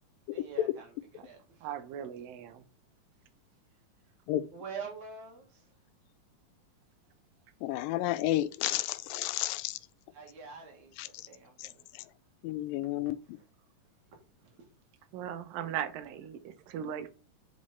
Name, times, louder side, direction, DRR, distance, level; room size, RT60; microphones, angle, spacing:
voice 1, 0.3-1.7 4.5-5.6 10.1-11.9 13.2-13.4 14.4-14.5, right 5 dB, 60° right, 3.1 m, -46 dB
voice 2, 1.6-2.6 15.1-17.1, right 9 dB, 85° right, 2.5 m, -38 dB
voice 3, 7.6-9.8 11.0-11.1 12.4-13.2, left 14 dB, 85° left, 2.3 m, -31 dB
6.2 x 5.7 x 4.3 m
omnidirectional pair, 4.0 m